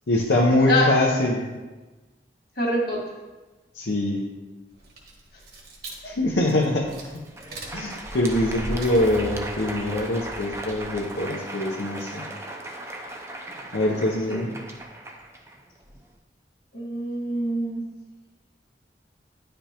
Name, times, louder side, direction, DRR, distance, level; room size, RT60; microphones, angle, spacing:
voice 1, 0.1-1.5 3.7-4.2 6.0-6.9 7.7-12.2 13.7-14.5, left 1 dB, 85° left, -2 dB, 0.7 m, -23 dB
voice 2, 2.5-3.0 8.3-8.5 14.3-14.4 16.7-17.8, left 1 dB, 60° left, -3 dB, 1.8 m, -25 dB
sound 1, 4.7-11.3, right 1 dB, 55° right, 1.5 m, -39 dB
Crowd, 7.2-16.1, right 1 dB, 15° right, 0.5 m, -37 dB
10.0 x 5.1 x 2.9 m, 1.2 s
head